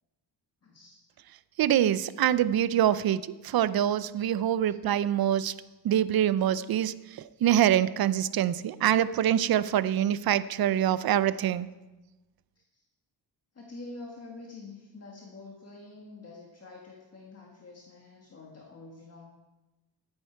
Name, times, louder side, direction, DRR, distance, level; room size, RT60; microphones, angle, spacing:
voice 1, 0.6-1.0 12.5-12.8 13.5-19.3, left 3 dB, 35° left, -2 dB, 1.6 m, -47 dB
voice 2, 1.6-5.5 5.8-6.9 7.4-11.7, right 11 dB, 55° right, 16 dB, 0.5 m, -25 dB
13.0 x 9.0 x 4.6 m, 1.1 s
cardioid pair, 110°, 43 cm